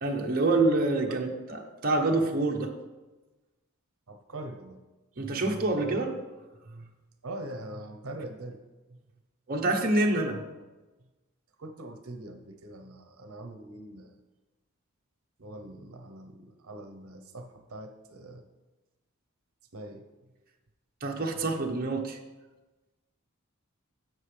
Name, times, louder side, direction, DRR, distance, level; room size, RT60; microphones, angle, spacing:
voice 1, 0.0-2.7 5.2-6.2 9.5-10.4 21.0-22.2, right 2 dB, 45° right, 1 dB, 0.9 m, -27 dB
voice 2, 4.1-4.8 7.2-8.6 8.9-9.0 11.6-14.1 15.4-18.4 19.7-20.0, right 1 dB, 75° right, 5 dB, 0.8 m, -42 dB
10.5 x 7.7 x 3.3 m, 1.2 s
head